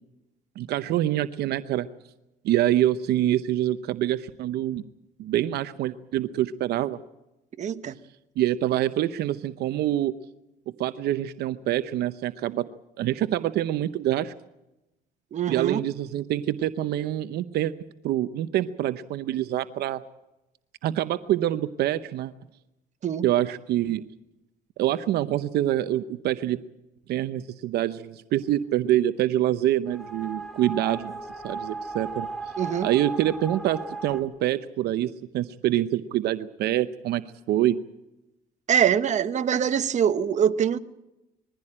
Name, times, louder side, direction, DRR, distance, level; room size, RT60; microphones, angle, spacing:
voice 1, 0.6-1.9 2.4-4.8 5.2-7.0 8.4-10.1 10.8-12.6 13.0-14.3 15.5-17.7 18.0-20.0 20.8-22.3 23.2-24.0 24.8-26.6 27.1-31.1 31.4-32.3 32.8-37.8, right 13 dB, 75° right, 12 dB, 0.8 m, -25 dB
voice 2, 7.6-8.0 15.3-15.8 23.0-23.3 32.6-32.9 38.7-40.8, right 8 dB, 45° right, 10 dB, 1.1 m, -23 dB
sound 1, 29.9-34.2, right 3 dB, ahead, 3.4 m, -36 dB
21.5 x 15.5 x 8.7 m, 0.94 s
cardioid pair, 110°, 17 cm